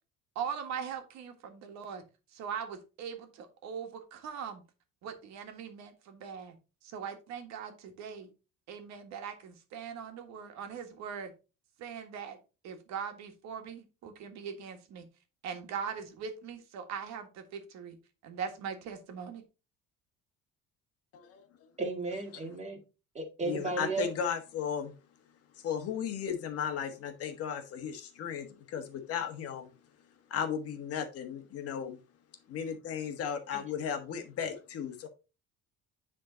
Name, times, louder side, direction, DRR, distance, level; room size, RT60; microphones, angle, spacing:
voice 1, 0.4-2.0 2.3-4.6 5.0-6.6 6.8-8.3 8.7-11.3 11.8-12.4 12.6-15.1 15.4-18.0 18.2-19.4, right 7 dB, 65° right, 1.7 m, -41 dB
voice 2, 21.1-21.4 23.5-24.9 25.6-29.7 30.3-32.0 32.5-35.1, left 7 dB, 50° left, 1.4 m, -35 dB
voice 3, 21.8-22.8 23.1-24.1 34.4-34.5, right 3 dB, 20° right, 1.9 m, -34 dB
9.9 x 3.8 x 3.8 m
cardioid pair, 160°, 30 cm